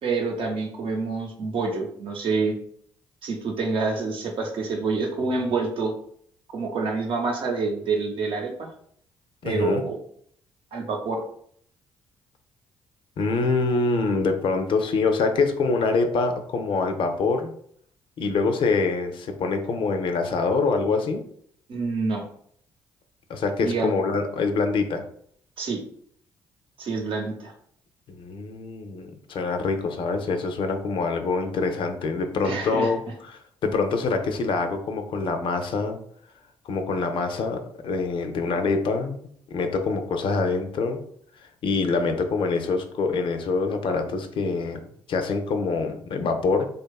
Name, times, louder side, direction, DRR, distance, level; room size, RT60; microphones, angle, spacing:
voice 1, 0.0-2.6 3.2-5.9 6.5-8.7 9.4-10.0 10.7-11.2 21.7-22.3 23.6-23.9 25.6-25.8 26.8-27.5 32.4-32.9, right 4 dB, 60° right, 2 dB, 0.7 m, -27 dB
voice 2, 9.4-9.8 13.2-17.5 18.2-21.2 23.3-25.0 28.1-33.0 33.3-36.0 36.6-39.2 39.5-41.0 41.6-44.8 45.1-46.7, left 4 dB, 60° left, 6 dB, 0.4 m, -25 dB
2.6 x 2.3 x 2.3 m, 0.64 s
supercardioid pair, 60°, 10 cm